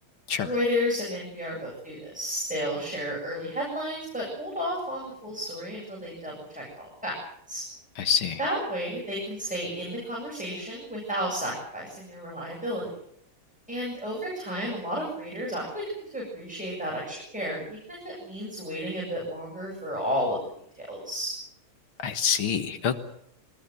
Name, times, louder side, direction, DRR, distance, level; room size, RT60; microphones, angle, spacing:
voice 1, 0.4-7.1 7.5-7.6 8.4-12.9 13.7-20.4 20.8-21.3, equal, 5° right, -4 dB, 7.7 m, -32 dB
voice 2, 8.0-8.4 22.0-23.0, left 7 dB, 80° left, 8 dB, 2.3 m, -26 dB
24.5 x 20.0 x 7.8 m, 0.71 s
omnidirectional pair, 2.3 m